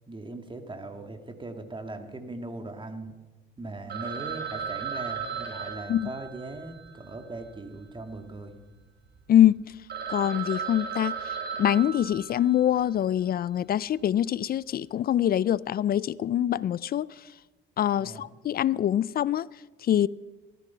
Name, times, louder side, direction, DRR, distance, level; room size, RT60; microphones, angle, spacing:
voice 1, 0.1-3.1 3.6-8.5 18.0-18.3, right 2 dB, 25° right, 2.0 m, -39 dB
Telephone, 3.9-8.2 8.5-8.6 9.2-9.3 9.6-9.7 9.9-12.9, right 6 dB, 60° right, 3.2 m, -36 dB
voice 2, 9.3-9.7 10.1-11.3 11.6-17.1 17.8-19.5 19.8-20.1, left 11 dB, 50° left, 0.4 m, -24 dB
17.0 x 13.0 x 5.7 m
cardioid pair, 90°, 20 cm